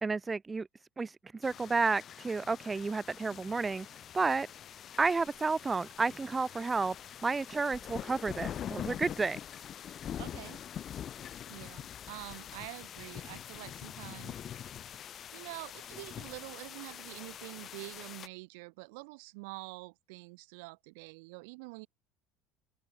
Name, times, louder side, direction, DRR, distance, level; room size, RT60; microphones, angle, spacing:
voice 1, 0.0-0.7 1.0-3.9 4.1-4.5 5.0-6.9 7.2-9.4, right 4 dB, 20° right, 1.3 m, -31 dB
sound 1, 1.4-18.3, left 9 dB, 40° left, 2.9 m, -44 dB
voice 2, 10.2-10.6 11.5-14.7 15.3-21.9, right 30 dB, 80° right, 5.6 m, -46 dB
open air
supercardioid pair, 110°, 0 cm